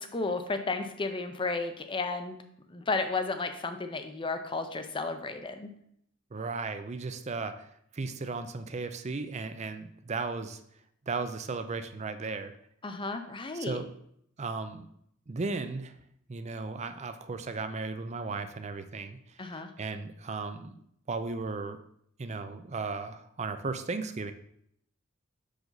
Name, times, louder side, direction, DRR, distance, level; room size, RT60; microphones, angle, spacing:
voice 1, 0.0-2.4 2.7-5.7 12.8-13.8 19.4-19.7, left 3 dB, 25° left, 8 dB, 0.6 m, -33 dB
voice 2, 6.3-10.6 11.1-12.6 13.5-13.9 14.4-14.9 15.3-16.0 16.3-20.7 21.1-21.8 22.2-24.3, right 4 dB, 35° right, 9 dB, 0.5 m, -36 dB
6.6 x 5.0 x 3.9 m, 0.71 s
head